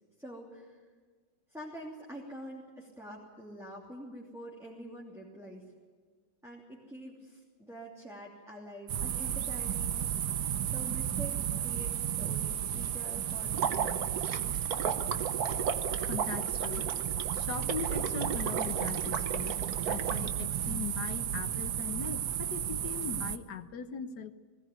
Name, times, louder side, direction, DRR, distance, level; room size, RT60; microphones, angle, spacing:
voice 1, 0.2-0.8 1.5-5.7 6.4-10.4 10.7-14.2, right 1 dB, ahead, -4 dB, 2.9 m, -46 dB
sound 1, 8.9-23.4, right 10 dB, 90° right, 1.4 m, -33 dB
Water / Liquid, 13.5-20.3, right 7 dB, 70° right, 1.5 m, -35 dB
voice 2, 16.1-17.0 17.3-19.6 19.9-24.3, left 7 dB, 80° left, 10 dB, 1.6 m, -40 dB
20.0 x 17.5 x 9.4 m, 1.5 s
omnidirectional pair, 1.7 m